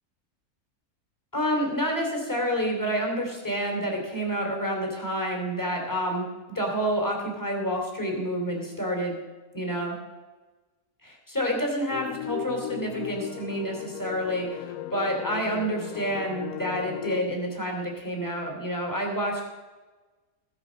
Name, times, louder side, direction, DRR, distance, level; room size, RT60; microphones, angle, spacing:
voice 1, 1.3-9.2 9.5-10.0 11.0-19.4, equal, 10° left, 1 dB, 2.9 m, -29 dB
sound 1, 11.9-17.2, left 11 dB, 80° left, 1.1 m, -36 dB
15.5 x 8.2 x 6.3 m, 1.2 s
omnidirectional pair, 1.6 m